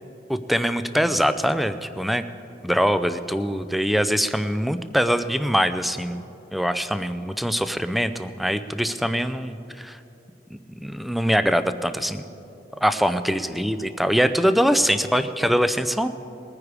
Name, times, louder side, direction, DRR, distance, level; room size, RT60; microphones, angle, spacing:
voice 1, 0.3-2.2 2.6-6.2 6.5-10.0 10.5-12.3 12.8-16.1, equal, ahead, 11 dB, 0.4 m, -23 dB
20.5 x 9.8 x 4.8 m, 2.8 s
head